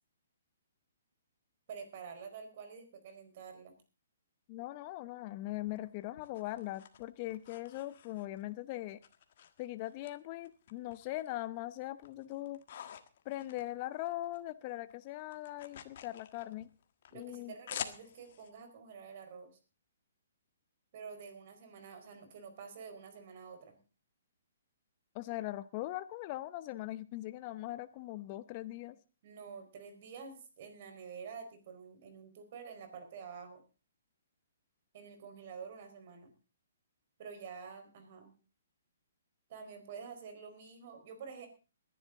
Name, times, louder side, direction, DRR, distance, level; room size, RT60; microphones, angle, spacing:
voice 1, 1.7-3.7 17.1-19.5 20.9-23.8 29.2-33.6 34.9-36.3 37.2-38.3 39.5-41.5, right 6 dB, 50° right, 7 dB, 4.7 m, -48 dB
voice 2, 4.5-9.0 9.6-12.6 13.2-16.7 17.1-17.5 25.1-29.0, left 16 dB, 35° left, 12 dB, 0.8 m, -40 dB
sound 1, 5.7-8.5 9.0-10.1 10.4-11.5 11.8-14.4 14.7-18.5, left 9 dB, 55° left, 1.6 m, -48 dB
20.5 x 11.0 x 3.9 m, 0.34 s
hypercardioid pair, 140°, 0 cm